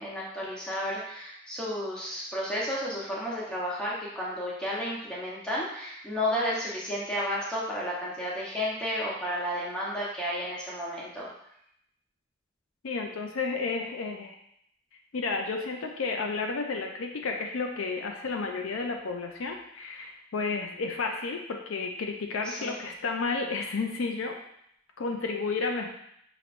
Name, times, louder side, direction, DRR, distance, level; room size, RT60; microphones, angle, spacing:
voice 1, 0.0-11.3 22.4-22.8, equal, 5° left, -6 dB, 0.9 m, -32 dB
voice 2, 12.8-14.4 15.1-24.3 25.0-25.9, left 4 dB, 70° left, 2 dB, 0.5 m, -32 dB
5.7 x 3.0 x 2.5 m, 0.73 s
head